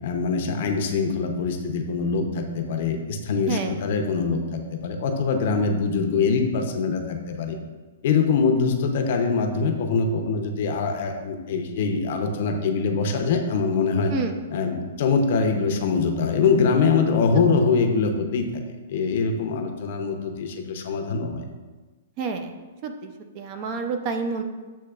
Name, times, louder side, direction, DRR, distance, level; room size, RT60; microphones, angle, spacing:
voice 1, 0.0-7.6 8.0-14.1 14.5-18.5 18.9-21.4, left 4 dB, 55° left, 4 dB, 0.6 m, -23 dB
voice 2, 22.2-22.5 22.8-24.4, right 4 dB, 35° right, 6 dB, 0.4 m, -29 dB
7.7 x 2.9 x 2.3 m, 1.3 s
hypercardioid pair, 150°, 0 cm